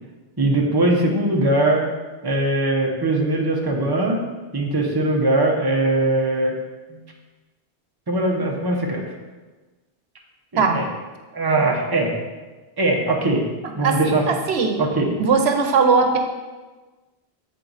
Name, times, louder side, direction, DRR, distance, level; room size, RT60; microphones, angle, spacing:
voice 1, 0.4-1.9 2.2-4.2 4.5-6.5 6.9-7.0 8.1-9.0 10.5-10.8 11.3-12.1 12.8-13.5 13.8-14.2 14.8-15.2, right 2 dB, 25° right, -1 dB, 0.9 m, -20 dB
voice 2, 14.3-14.8 15.2-16.2, right 5 dB, 85° right, 4 dB, 1.0 m, -19 dB
7.7 x 4.4 x 4.0 m, 1.2 s
omnidirectional pair, 1.1 m